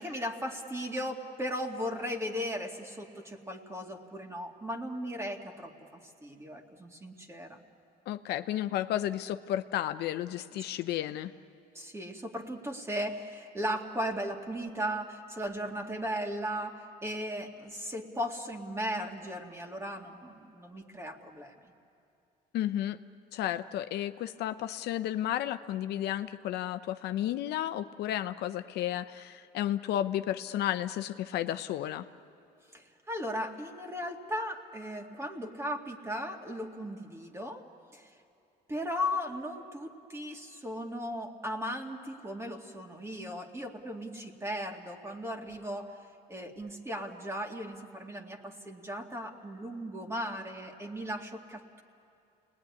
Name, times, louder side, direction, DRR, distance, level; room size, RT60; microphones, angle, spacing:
voice 1, 0.0-7.6 11.7-21.5 32.7-37.7 37.9-38.1 38.7-46.0 46.3-51.8, equal, 15° right, 3 dB, 2.2 m, -37 dB
voice 2, 8.1-11.3 22.5-23.0 23.3-32.1, left 12 dB, 75° left, 10 dB, 0.7 m, -32 dB
29.5 x 20.0 x 9.6 m, 2.6 s
cardioid pair, 110°, 17 cm